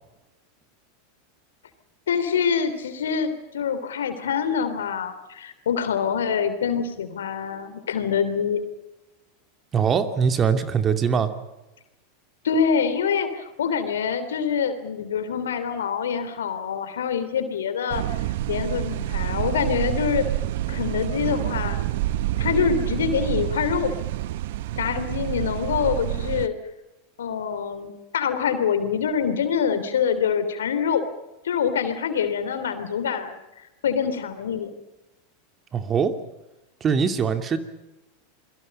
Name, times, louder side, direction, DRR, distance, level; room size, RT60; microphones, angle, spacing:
voice 1, 2.1-8.6 12.4-18.0 18.5-20.3 20.7-21.8 22.4-23.9 24.8-26.6 27.2-31.0 31.4-34.7, left 7 dB, 75° left, 10 dB, 3.1 m, -25 dB
voice 2, 9.7-11.3 35.7-36.1 36.8-37.6, right 6 dB, 30° right, 8 dB, 2.4 m, -22 dB
sound 1, 17.9-26.5, right 14 dB, 65° right, 0.9 m, -28 dB
28.5 x 22.5 x 5.5 m, 1.0 s
hypercardioid pair, 90°, 0 cm